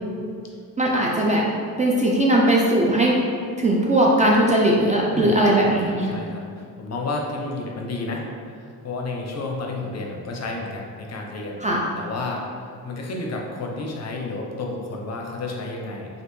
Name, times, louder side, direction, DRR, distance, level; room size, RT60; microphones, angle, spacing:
voice 1, 0.8-1.4 1.8-3.2 3.6-6.1 11.6-11.8, right 1 dB, 20° right, -3 dB, 0.3 m, -19 dB
voice 2, 5.1-8.3 8.6-11.6 12.0-16.1, left 2 dB, 40° left, 0 dB, 0.6 m, -31 dB
3.1 x 2.5 x 3.1 m, 2.3 s
cardioid pair, 70°, 39 cm